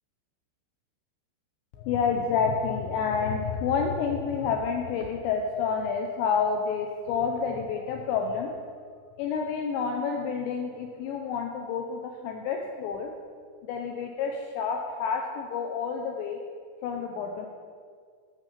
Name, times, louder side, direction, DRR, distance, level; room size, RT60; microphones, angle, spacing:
voice 1, 1.8-8.5 9.2-13.1 13.6-16.4 16.8-17.5, left 6 dB, 90° left, 2 dB, 2.5 m, -29 dB
12.5 x 5.4 x 6.7 m, 2.1 s
omnidirectional pair, 5.9 m